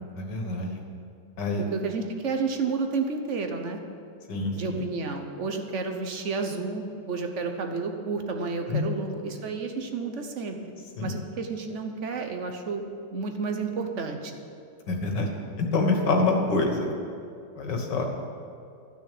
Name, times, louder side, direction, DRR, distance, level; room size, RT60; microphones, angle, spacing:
voice 1, 0.1-0.8 1.4-1.6 4.3-4.8 8.7-8.9 11.0-11.2 14.9-15.3 15.6-16.9 17.6-18.2, left 3 dB, 75° left, 2 dB, 2.0 m, -26 dB
voice 2, 1.7-3.8 4.5-10.6 11.0-12.8 13.1-14.4, right 4 dB, 50° right, 4 dB, 1.2 m, -31 dB
12.5 x 6.3 x 8.6 m, 2.4 s
omnidirectional pair, 1.9 m